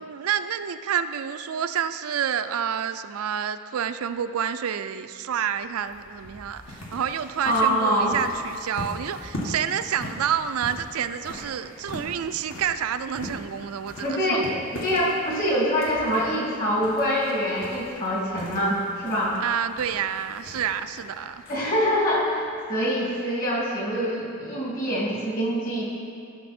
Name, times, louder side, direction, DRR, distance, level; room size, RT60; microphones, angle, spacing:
voice 1, 0.0-14.4 19.4-21.4, right 8 dB, 80° right, 10 dB, 0.4 m, -29 dB
sound 1, 5.4-23.1, left 1 dB, 65° left, 1.7 m, -41 dB
voice 2, 7.4-8.1 14.0-19.4 21.5-25.8, equal, 40° left, -4 dB, 2.6 m, -25 dB
14.0 x 6.5 x 4.3 m, 2.5 s
head